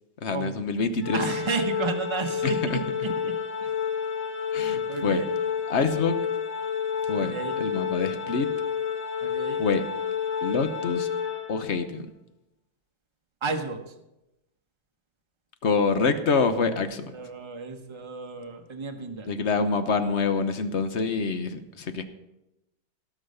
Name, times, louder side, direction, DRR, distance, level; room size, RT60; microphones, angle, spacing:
voice 1, 0.2-1.2 2.4-2.8 4.5-5.2 5.7-6.2 7.1-8.5 9.6-9.8 10.4-11.1 11.5-12.1 15.6-17.1 19.3-22.0, left 4 dB, 45° left, 9 dB, 1.0 m, -26 dB
Organ, 1.0-11.9, left 7 dB, 85° left, 2.2 m, -30 dB
voice 2, 1.1-3.7 4.9-5.3 7.2-7.6 9.2-9.6 13.4-13.8 17.1-19.3, right 4 dB, 20° right, 4 dB, 0.9 m, -32 dB
17.5 x 6.4 x 6.6 m, 0.92 s
omnidirectional pair, 2.0 m